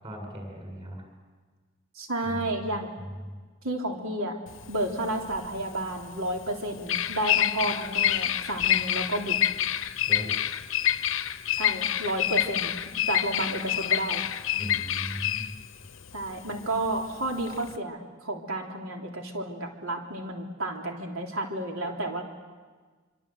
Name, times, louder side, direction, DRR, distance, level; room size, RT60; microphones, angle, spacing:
voice 1, 0.0-1.1 2.2-2.7 3.0-3.4 10.1-10.3 14.6-15.5, equal, 25° right, 1 dB, 8.0 m, -38 dB
voice 2, 2.0-3.0 3.6-4.4 4.7-9.4 11.5-12.8 13.1-14.2 16.1-22.2, right 1 dB, 80° right, 1 dB, 3.5 m, -31 dB
Bird vocalization bird call bird song, 4.5-17.8, left 10 dB, 65° left, 0.8 m, -28 dB
27.0 x 26.0 x 8.0 m, 1.4 s
head